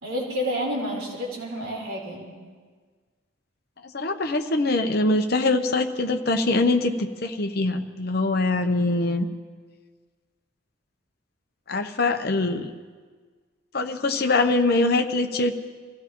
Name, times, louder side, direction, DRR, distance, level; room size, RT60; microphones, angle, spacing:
voice 1, 0.0-2.4, equal, 80° right, -3 dB, 4.0 m, -29 dB
voice 2, 3.9-9.3 11.7-12.7 13.7-15.5, left 2 dB, 50° left, 6 dB, 0.9 m, -23 dB
25.5 x 15.5 x 3.1 m, 1.5 s
head